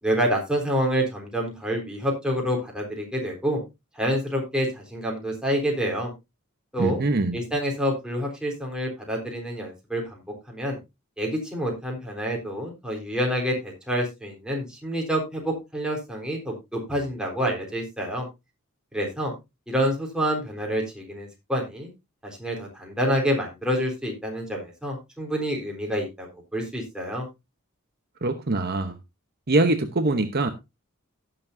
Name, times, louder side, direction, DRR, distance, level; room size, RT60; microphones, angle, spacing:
voice 1, 0.0-3.6 4.0-6.1 6.7-7.0 7.3-10.2 10.5-10.8 11.2-18.3 18.9-19.3 19.7-21.9 22.2-27.3, equal, 5° right, 3.8 m, -27 dB
voice 2, 6.8-7.4 28.2-29.0 29.5-30.5, right 2 dB, 50° right, 0.9 m, -23 dB
16.5 x 7.0 x 2.7 m
head